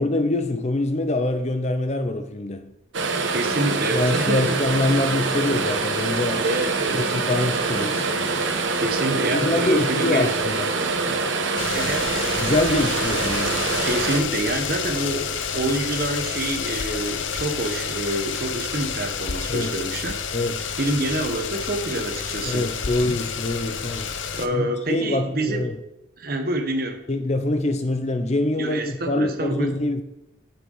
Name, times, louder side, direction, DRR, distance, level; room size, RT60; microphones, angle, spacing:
voice 1, 0.0-2.7 3.9-6.4 7.0-8.0 9.2-10.7 12.4-13.6 19.5-19.8 20.3-20.6 22.4-24.1 24.5-25.8 27.1-30.0, left 2 dB, 35° left, 0.7 m, -24 dB
sound 1, 2.9-14.2, right 4 dB, 85° right, 1.1 m, -25 dB
voice 2, 3.3-4.6 6.4-7.1 8.8-10.3 11.7-12.1 13.8-20.2 20.8-22.7 24.3-25.6 26.2-27.0 28.6-29.8, right 1 dB, 50° right, 1.3 m, -27 dB
sound 2, 11.6-24.5, left 6 dB, 85° left, 0.7 m, -29 dB
8.6 x 5.9 x 5.6 m
head